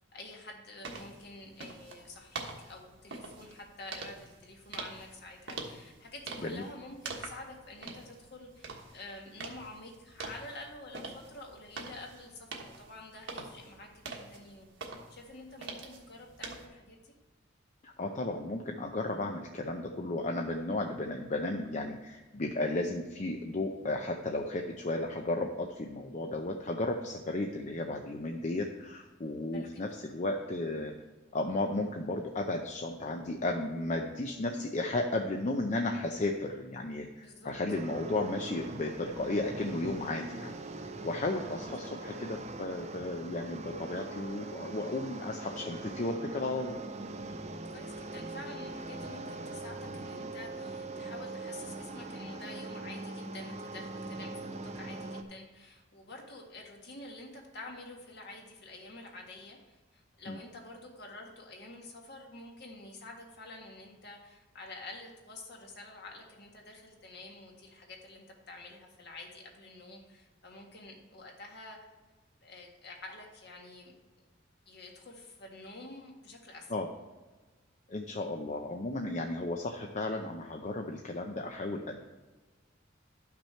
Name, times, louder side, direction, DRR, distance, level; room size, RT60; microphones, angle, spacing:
voice 1, 0.1-17.1 29.5-29.7 37.2-37.6 42.1-42.2 47.7-71.8 72.4-73.9 74.6-76.7, left 2 dB, 55° left, 0 dB, 1.7 m, -48 dB
sound 1, 0.8-16.7, right 3 dB, 65° right, 1.4 m, -45 dB
voice 2, 17.8-30.9 31.3-40.5 41.0-46.8 60.3-60.4 76.7-76.9 77.9-82.0, left 2 dB, 35° left, 3 dB, 0.6 m, -34 dB
sound 2, 37.7-55.2, right 2 dB, 35° right, 0.6 m, -42 dB
11.5 x 6.0 x 4.4 m, 1.2 s
head